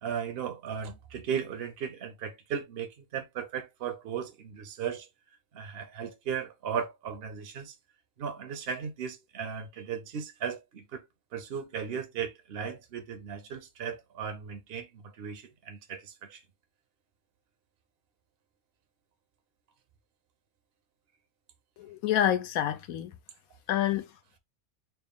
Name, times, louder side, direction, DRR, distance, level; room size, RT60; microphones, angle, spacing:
voice 1, 0.0-5.1 5.5-7.7 8.2-11.0 11.3-16.4, right 7 dB, 60° right, 0.7 m, -36 dB
voice 2, 21.8-23.1 23.7-24.1, left 11 dB, 90° left, 1.1 m, -27 dB
4.3 x 2.0 x 3.4 m
omnidirectional pair, 1.5 m